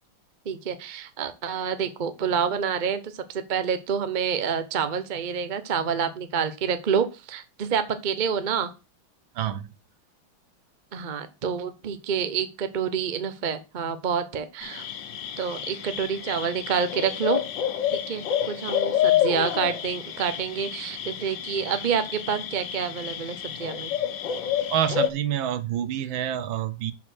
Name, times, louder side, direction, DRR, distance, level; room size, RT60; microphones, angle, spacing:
voice 1, 0.4-8.7 10.9-14.9 15.4-17.4 18.1-23.9, right 7 dB, 50° right, 0.5 m, -28 dB
voice 2, 9.4-9.7 24.7-26.9, right 10 dB, 70° right, 1.5 m, -27 dB
sound 1, 14.6-25.1, left 10 dB, 65° left, 1.6 m, -29 dB
6.6 x 5.8 x 6.1 m
omnidirectional pair, 2.3 m